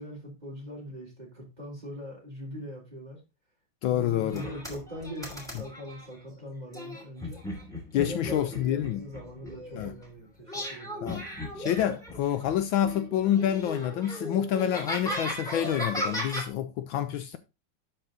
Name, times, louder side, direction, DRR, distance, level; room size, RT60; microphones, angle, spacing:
voice 1, 0.0-3.2 3.9-7.4 7.9-11.3, equal, 20° right, 3.7 m, -41 dB
voice 2, 3.8-4.4 7.9-9.0 9.7-9.9 11.0-11.2 11.6-17.4, left 10 dB, 75° left, 1.3 m, -28 dB
sound 1, 4.3-6.1 6.7-10.0 10.5-12.5 12.8-16.5, equal, ahead, 2.7 m, -36 dB
11.5 x 4.5 x 3.8 m
omnidirectional pair, 2.3 m